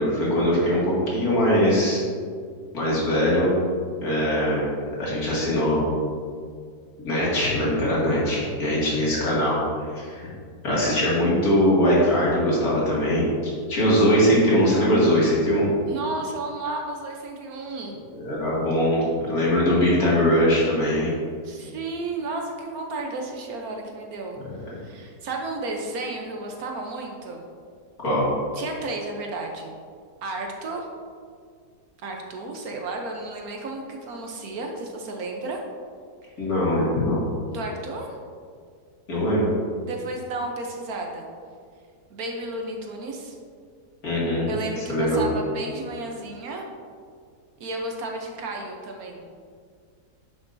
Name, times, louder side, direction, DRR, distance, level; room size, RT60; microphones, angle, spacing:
voice 1, 0.0-2.0 2.7-3.6 4.0-4.7 5.0-5.8 7.0-9.6 9.8-10.3 10.6-13.2 13.7-15.7 18.1-21.1 24.5-24.6 28.0-28.3 36.4-37.2 39.1-39.5 44.0-44.5 44.9-45.2, equal, 60° left, -7 dB, 2.7 m, -21 dB
voice 2, 15.9-17.9 21.4-24.4 24.6-27.4 28.5-29.8 30.2-30.9 32.0-35.6 37.5-38.2 39.8-41.3 42.1-43.3 44.5-46.6 47.6-49.2, right 2 dB, 65° right, 2 dB, 1.2 m, -33 dB
10.5 x 6.0 x 2.7 m, 2.1 s
omnidirectional pair, 1.8 m